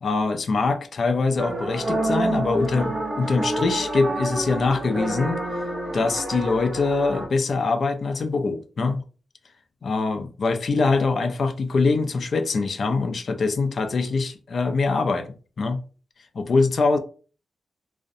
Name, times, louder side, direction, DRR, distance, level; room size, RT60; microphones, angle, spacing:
voice 1, 0.0-5.4 5.9-9.0 9.8-15.8 16.3-17.0, left 4 dB, 50° left, 0.3 m, -23 dB
sound 1, 1.4-7.3, right 1 dB, 25° right, 0.8 m, -28 dB
2.4 x 2.0 x 2.6 m
wide cardioid pair, 155°, 0 cm